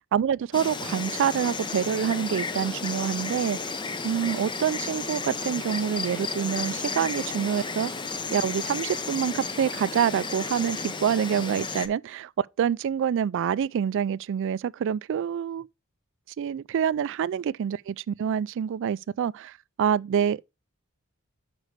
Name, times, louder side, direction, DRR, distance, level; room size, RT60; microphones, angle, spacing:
voice 1, 0.1-3.7 4.0-7.9 8.3-12.3 12.6-15.7 16.4-20.5, right 8 dB, 60° right, 0.3 m, -26 dB
Insect, 0.5-11.9, left 4 dB, 20° left, 0.6 m, -33 dB
6.5 x 5.3 x 4.6 m
head